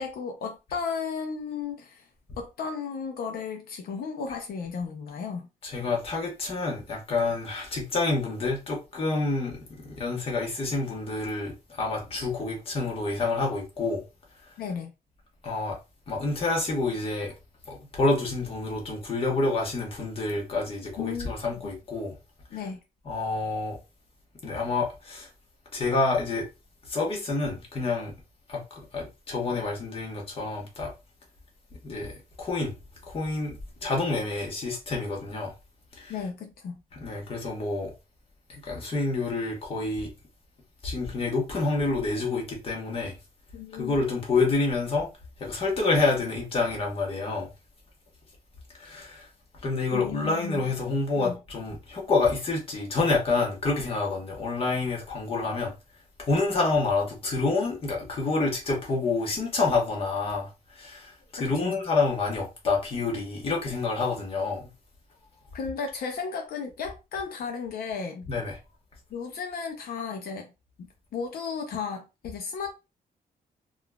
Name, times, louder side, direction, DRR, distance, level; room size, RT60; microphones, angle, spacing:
voice 1, 0.0-2.1 2.4-5.5 14.6-14.9 21.0-21.7 22.5-22.8 36.1-36.8 43.5-44.0 49.9-50.7 51.2-51.4 61.6-61.7 65.5-68.3 69.1-70.5 70.8-72.7, left 5 dB, 80° left, 0.5 m, -34 dB
voice 2, 5.6-9.6 9.8-14.0 15.4-15.8 16.1-17.3 17.7-22.2 23.1-23.8 24.4-25.3 25.7-26.5 26.9-28.1 28.5-30.9 31.8-32.1 32.4-32.7 33.1-35.5 36.0-36.1 36.9-37.9 38.5-40.1 40.8-43.2 43.7-45.1 45.4-47.5 48.8-49.3 49.6-55.7 56.2-60.5 60.7-64.7 68.3-68.6, left 3 dB, 35° left, 1.0 m, -28 dB
3.7 x 2.4 x 2.2 m
wide cardioid pair, 170°, 15 cm